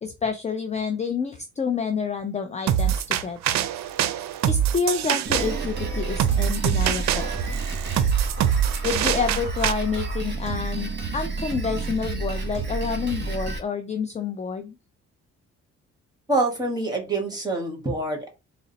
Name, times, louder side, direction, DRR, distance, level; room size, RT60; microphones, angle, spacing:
voice 1, 0.0-3.6 4.5-7.3 8.8-14.8, left 5 dB, 25° left, 6 dB, 0.4 m, -28 dB
sound 1, 2.7-9.7, right 10 dB, 65° right, 0.5 m, -24 dB
Drum kit, 5.2-13.6, right 3 dB, 35° right, 1.2 m, -30 dB
voice 2, 16.3-18.3, right 2 dB, 15° right, 1 dB, 1.7 m, -26 dB
3.7 x 2.0 x 4.0 m, 0.27 s
cardioid pair, 90°, 30 cm